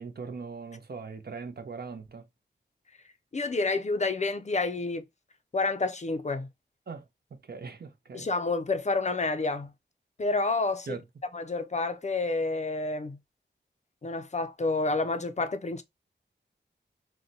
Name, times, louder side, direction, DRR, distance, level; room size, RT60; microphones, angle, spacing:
voice 1, 0.0-2.2 6.9-7.0 7.3-8.3 10.9-11.0, right 4 dB, 55° right, 0.6 m, -40 dB
voice 2, 3.3-5.0 5.5-6.5 8.1-9.7 10.2-11.0 11.3-13.2 14.0-15.8, left 3 dB, 40° left, 0.5 m, -29 dB
2.8 x 2.1 x 3.8 m
wide cardioid pair, 85°, 19 cm